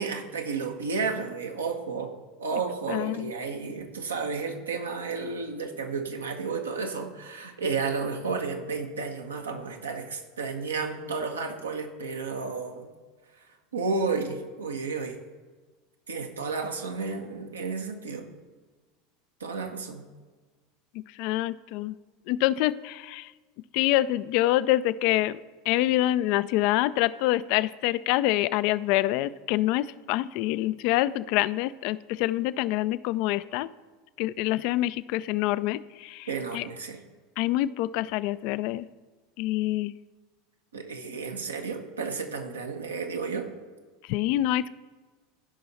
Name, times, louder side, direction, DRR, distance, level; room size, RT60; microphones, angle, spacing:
voice 1, 0.0-2.1 2.4-12.9 13.7-15.2 16.1-18.3 19.4-20.0 36.3-37.0 40.7-43.5, right 4 dB, 85° right, 4 dB, 1.1 m, -32 dB
voice 2, 2.9-3.3 21.2-21.9 22.3-23.3 23.7-25.4 25.7-33.7 34.2-36.3 36.5-36.6 37.4-38.9 39.4-39.9 44.1-44.7, left 15 dB, 55° left, 17 dB, 0.3 m, -26 dB
15.0 x 5.5 x 4.1 m, 1.4 s
hypercardioid pair, 80°, 0 cm